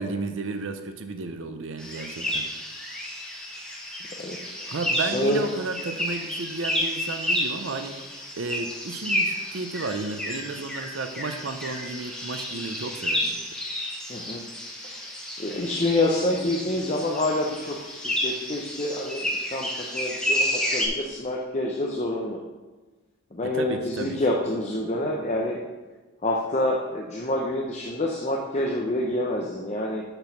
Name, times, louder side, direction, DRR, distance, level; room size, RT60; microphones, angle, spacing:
voice 1, 0.0-2.7 4.7-8.0 8.4-13.4 23.4-24.2, right 3 dB, 60° right, 8 dB, 0.6 m, -33 dB
sound 1, 1.8-20.9, left 1 dB, 5° left, 1.2 m, -31 dB
voice 2, 4.2-5.4 14.1-14.4 15.4-22.4 23.3-25.6 26.2-30.0, left 1 dB, 30° left, -1 dB, 0.6 m, -27 dB
6.7 x 6.2 x 5.8 m, 1.2 s
head